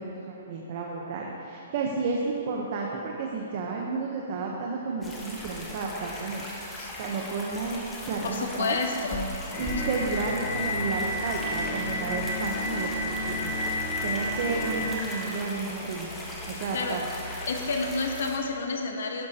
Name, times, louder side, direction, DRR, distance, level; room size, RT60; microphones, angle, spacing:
voice 1, 0.0-6.7 7.0-8.8 9.6-12.9 13.3-13.5 14.0-16.1 16.5-17.0, right 4 dB, 40° right, -1 dB, 0.9 m, -32 dB
sound 1, 5.0-18.4, left 1 dB, 10° left, 1.1 m, -39 dB
voice 2, 8.2-9.3 16.7-17.0 17.5-19.3, left 4 dB, 70° left, 3 dB, 1.1 m, -30 dB
sound 2, 9.5-15.1, left 1 dB, 25° left, 2.0 m, -31 dB
11.5 x 10.0 x 2.9 m, 3.0 s
hypercardioid pair, 165°, 0 cm